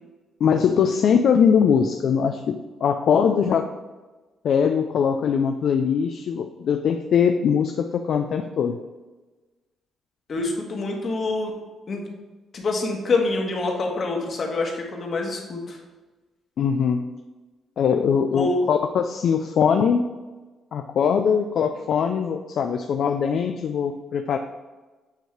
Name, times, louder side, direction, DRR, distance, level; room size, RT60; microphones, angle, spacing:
voice 1, 0.4-3.7 4.4-8.8 16.6-17.1 17.8-20.1 20.7-24.4, left 7 dB, 65° left, 6 dB, 0.4 m, -21 dB
voice 2, 10.3-11.5 11.9-12.1 12.5-15.8 18.3-18.7, left 3 dB, 50° left, 1 dB, 1.4 m, -26 dB
8.0 x 3.0 x 4.5 m, 1.2 s
cardioid pair, 90°, 0 cm